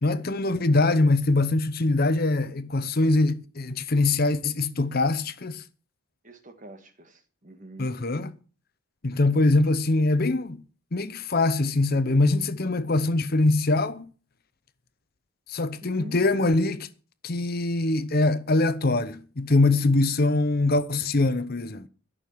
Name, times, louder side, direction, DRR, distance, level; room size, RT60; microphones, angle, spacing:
voice 1, 0.0-5.6 7.8-8.3 9.0-10.6 10.9-14.0 15.5-16.9 17.2-21.9, left 2 dB, 45° left, 0.8 m, -23 dB
voice 2, 6.2-7.9 15.8-16.2, equal, 35° right, 1.6 m, -44 dB
12.5 x 6.6 x 7.8 m
head